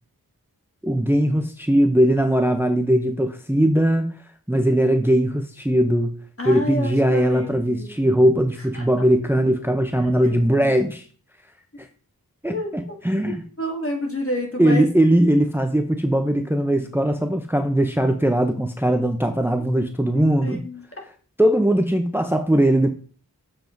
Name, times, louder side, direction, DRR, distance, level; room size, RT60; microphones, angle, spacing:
voice 1, 0.8-4.1 4.5-6.1 6.4-11.0 11.8-11.9 12.4-13.4 14.6-20.7 21.4-22.9, right 1 dB, 5° right, 6 dB, 0.8 m, -20 dB
voice 2, 6.4-7.9 8.7-8.8 10.2-10.8 12.5-14.9 16.8-16.9 20.1-20.8, left 1 dB, 35° left, 1 dB, 2.4 m, -30 dB
7.4 x 7.2 x 4.0 m, 0.42 s
wide cardioid pair, 50°, 36 cm